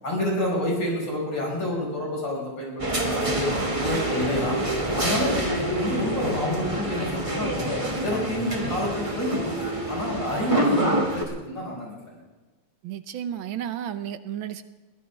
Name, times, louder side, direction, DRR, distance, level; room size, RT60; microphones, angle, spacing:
voice 1, 0.0-3.5 3.8-4.7 4.9-12.2, left 1 dB, 55° left, -2 dB, 6.3 m, -29 dB
sound 1, 2.8-11.2, right 1 dB, 15° right, 1.8 m, -27 dB
voice 2, 12.8-14.6, right 10 dB, 70° right, 11 dB, 1.6 m, -32 dB
22.5 x 16.0 x 3.5 m, 1.3 s
omnidirectional pair, 2.4 m